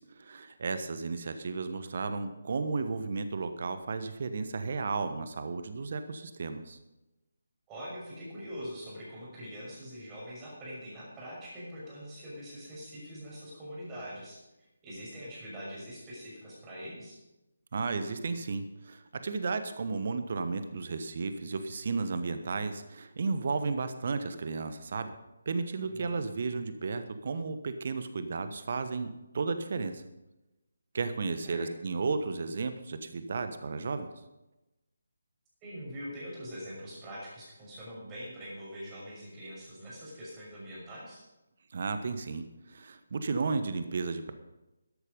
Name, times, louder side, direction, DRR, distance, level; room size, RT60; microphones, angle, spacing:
voice 1, 0.0-6.8 17.7-25.1 25.4-30.0 30.9-34.1 41.7-44.3, right 4 dB, 45° right, 10 dB, 1.1 m, -33 dB
voice 2, 7.7-17.2 25.9-26.2 31.4-31.7 35.6-41.2, equal, 15° right, -6 dB, 6.2 m, -43 dB
13.0 x 11.0 x 5.3 m, 0.97 s
figure-of-eight pair, 150°, 0 cm